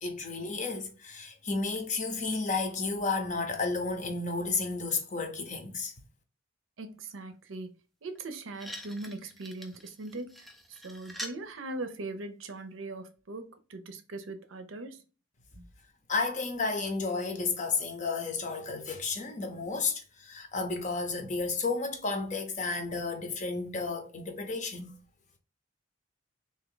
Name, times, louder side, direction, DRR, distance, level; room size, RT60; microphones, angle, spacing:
voice 1, 0.0-5.9 16.1-24.9, left 4 dB, 35° left, 0.6 m, -32 dB
voice 2, 6.8-7.7 8.0-15.0 15.6-15.7, right 2 dB, 75° right, 0.6 m, -40 dB
sound 1, 8.1-8.2 8.5-11.4 12.4-12.5, equal, ahead, 0.3 m, -44 dB
3.4 x 2.8 x 3.8 m
head